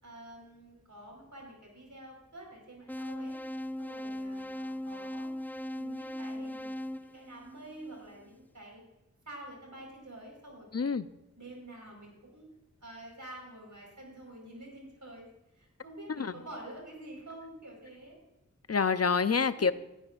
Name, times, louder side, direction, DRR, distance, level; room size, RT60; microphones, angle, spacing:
voice 1, 0.0-3.3 3.8-5.3 5.7-6.7 7.0-8.8 9.2-10.7 11.4-12.5 12.8-15.3 15.5-18.2 19.4-19.7, right 1 dB, 90° right, -1 dB, 4.6 m, -48 dB
sound 1, 2.9-8.0, left 1 dB, 5° left, 0.4 m, -39 dB
voice 2, 10.7-11.1 16.2-16.3 18.7-19.7, left 5 dB, 55° left, 13 dB, 0.6 m, -27 dB
18.0 x 9.9 x 2.5 m, 0.96 s
wide cardioid pair, 40°, 29 cm